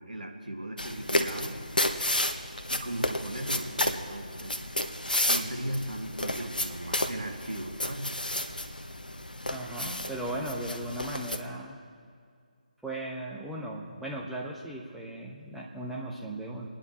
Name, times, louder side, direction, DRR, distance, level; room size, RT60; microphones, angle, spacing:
voice 1, 0.0-1.5 2.7-4.6 5.3-8.1, right 1 dB, 70° right, 2 dB, 1.8 m, -37 dB
sound 1, 0.8-11.4, left 1 dB, 80° left, 1.1 m, -32 dB
voice 2, 9.5-11.8 12.8-16.7, right 1 dB, ahead, -3 dB, 1.1 m, -37 dB
27.5 x 10.0 x 4.3 m, 2.1 s
figure-of-eight pair, 150°, 5 cm